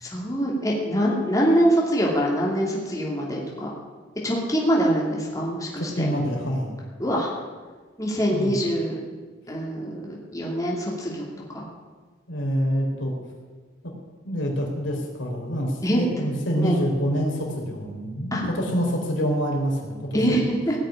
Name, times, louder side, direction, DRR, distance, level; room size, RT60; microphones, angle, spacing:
voice 1, 0.0-3.7 4.2-6.1 7.0-7.3 8.0-9.0 9.5-11.6 15.8-16.0 16.6-16.8 18.3-18.5 20.1-20.7, equal, 15° left, -3 dB, 2.7 m, -24 dB
voice 2, 5.8-6.8 8.3-8.5 12.3-13.1 14.2-20.4, equal, 75° left, -1 dB, 4.1 m, -26 dB
18.0 x 6.5 x 10.0 m, 1.4 s
head